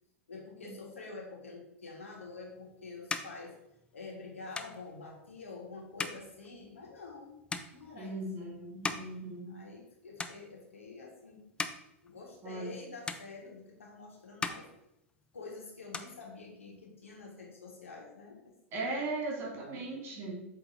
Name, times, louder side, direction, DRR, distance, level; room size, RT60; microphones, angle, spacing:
voice 1, 0.3-3.6 3.9-7.4 7.7-8.6 9.5-11.5 12.0-14.7 15.3-18.6 19.7-20.2, left 3 dB, 75° left, -1 dB, 1.8 m, -47 dB
sound 1, 2.2-9.9 10.2-10.9 11.3-12.8 13.1-13.9 14.2-15.5 15.7-16.9, left 4 dB, 15° left, 0.5 m, -42 dB
voice 2, 7.9-9.5 12.4-12.8 18.7-20.4, right 2 dB, 35° right, -1 dB, 2.6 m, -38 dB
8.0 x 3.5 x 4.4 m, 0.83 s
figure-of-eight pair, 90°, 7 cm